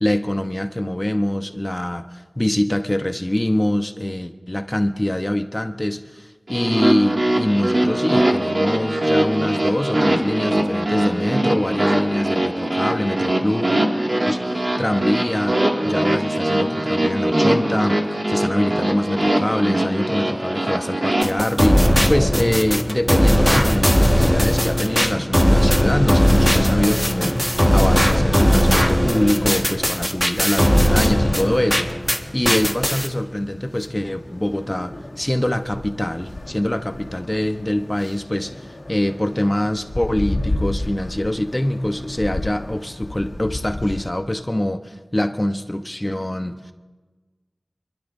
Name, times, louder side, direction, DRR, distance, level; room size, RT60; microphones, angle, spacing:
voice 1, 0.0-13.8 14.3-15.6 15.8-18.0 18.3-31.9 32.3-46.7, left 1 dB, 25° left, 6 dB, 0.8 m, -24 dB
sound 1, 6.5-21.2, right 1 dB, 60° right, 2.2 m, -21 dB
sound 2, 21.2-32.2 32.4-33.1, equal, ahead, 1.6 m, -18 dB
sound 3, 30.7-44.1, left 1 dB, 65° left, 1.7 m, -33 dB
28.0 x 12.0 x 2.7 m, 1.3 s
wide cardioid pair, 55°, 0 cm